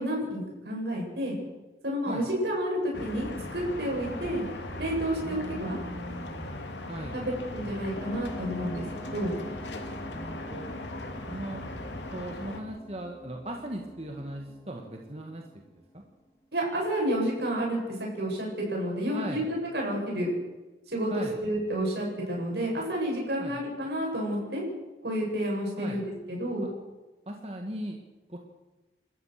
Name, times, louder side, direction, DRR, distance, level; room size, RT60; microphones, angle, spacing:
voice 1, 0.0-1.4 1.8-4.4 4.8-5.8 7.1-8.8 9.1-9.4 16.5-20.3 20.9-24.6 25.0-26.0 26.3-26.7, equal, 70° right, -2 dB, 7.6 m, -30 dB
sound 1, 2.9-12.6, left 1 dB, 90° left, 2.7 m, -39 dB
voice 2, 5.2-7.2 10.1-10.7 11.3-15.4 15.7-16.0 19.1-19.5 21.1-21.4 23.4-23.5 25.8-26.0 26.6-26.7 27.3-28.0 28.3-28.4, right 1 dB, 35° right, 2 dB, 1.8 m, -38 dB
sound 2, 8.0-16.1, equal, 15° left, 2.2 m, -45 dB
28.5 x 14.0 x 6.6 m, 1.1 s
head